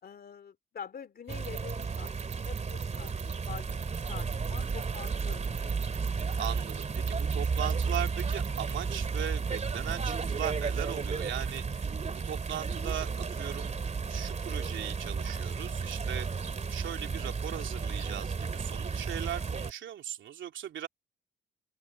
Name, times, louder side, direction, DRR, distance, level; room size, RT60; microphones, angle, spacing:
voice 1, 0.0-5.8, left 7 dB, 50° left, 2.8 m, -46 dB
sound 1, 1.3-19.7, right 5 dB, 35° right, 2.6 m, -33 dB
sound 2, 1.3-8.8, right 15 dB, 85° right, 6.3 m, -44 dB
voice 2, 6.4-13.7 14.1-16.3 16.7-20.9, right 10 dB, 70° right, 3.1 m, -39 dB
open air
cardioid pair, 90°, 20 cm